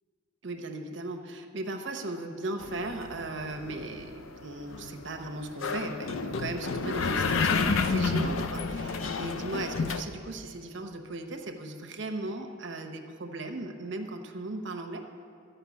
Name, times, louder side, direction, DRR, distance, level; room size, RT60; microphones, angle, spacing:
voice 1, 0.4-15.0, right 2 dB, 65° right, 4 dB, 0.9 m, -37 dB
sound 1, 2.6-10.0, left 4 dB, 85° left, 0.6 m, -30 dB
13.5 x 5.6 x 8.3 m, 2.5 s
head